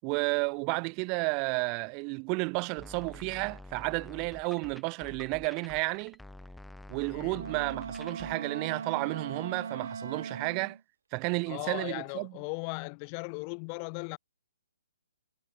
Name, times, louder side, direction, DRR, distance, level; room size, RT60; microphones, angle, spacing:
voice 1, 0.0-6.2 6.9-10.8 11.1-12.3, right 35 dB, 25° right, 0.5 m, -32 dB
sound 1, 2.8-8.3, left 1 dB, ahead, 3.1 m, -48 dB
voice 2, 7.1-7.4 11.5-14.2, left 40 dB or more, 25° left, 1.8 m, -37 dB
Wind instrument woodwind instrument, 7.3-10.8, right 6 dB, 75° right, 2.8 m, -39 dB
hypercardioid pair, 155°, 0 cm